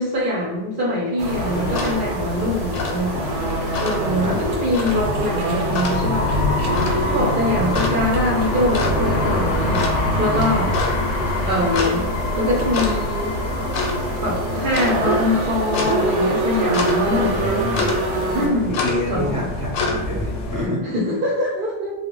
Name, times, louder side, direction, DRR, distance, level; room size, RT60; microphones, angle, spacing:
voice 1, 0.0-3.2 3.8-6.3 7.1-9.9 10.2-10.7 11.5-12.1 12.4-13.3 14.2-17.6 18.3-18.8 19.1-19.5 20.8-21.9, left 1 dB, 55° right, -5 dB, 0.7 m, -23 dB
sound 1, 1.2-18.5, right 1 dB, 85° right, 0.9 m, -26 dB
sound 2, 1.3-20.7, left 2 dB, 85° left, 0.9 m, -27 dB
sound 3, 4.5-15.1, left 2 dB, 60° left, 0.7 m, -27 dB
voice 2, 17.0-18.0 18.8-21.1, equal, 20° left, -7 dB, 0.6 m, -28 dB
2.1 x 2.0 x 3.7 m, 1.0 s
omnidirectional pair, 1.2 m